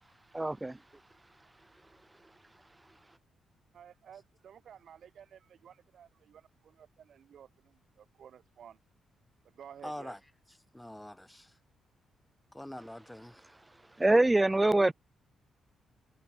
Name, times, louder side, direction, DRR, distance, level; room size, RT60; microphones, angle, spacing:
voice 1, 0.3-0.8 14.0-14.9, right 2 dB, 15° right, 0.4 m, -24 dB
voice 2, 3.7-8.8 9.4-10.2, right 8 dB, 65° right, 7.6 m, -54 dB
voice 3, 9.8-10.2 10.7-11.5 12.5-13.6, left 1 dB, 5° left, 2.1 m, -44 dB
cardioid pair, 110°, 0 cm